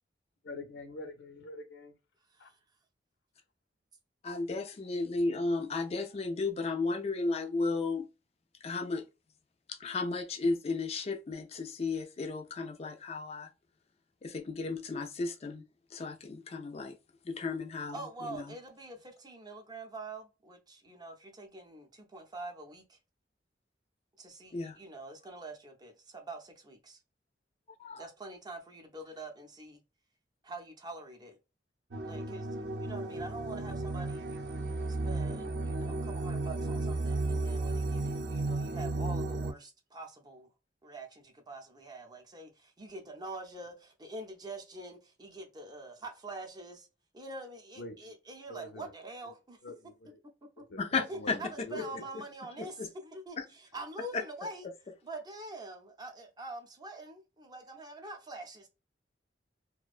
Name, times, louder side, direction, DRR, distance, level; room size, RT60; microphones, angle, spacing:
voice 1, 0.4-1.9 2.4-2.5 47.8-48.2 48.5-48.9 49.6-50.2 50.6-52.1 52.6-52.7, left 2 dB, 80° left, 0.6 m, -45 dB
voice 2, 4.2-8.1 8.6-9.0 9.7-13.5 14.2-15.6 15.9-17.0 17.2-18.0 18.3-18.4 24.5-24.8 27.8-28.1 50.8-51.4 52.8-52.9 53.4-53.5 54.1-54.2, left 3 dB, 35° left, 0.4 m, -34 dB
voice 3, 17.9-23.0 24.2-27.0 28.0-29.8 30.4-31.4 32.0-34.2 34.9-40.5 40.8-46.9 47.1-49.6 51.1-54.7 55.0-58.7, right 2 dB, 25° right, 0.5 m, -45 dB
sound 1, 31.9-39.5, right 2 dB, 65° right, 0.6 m, -34 dB
2.4 x 2.1 x 2.4 m
head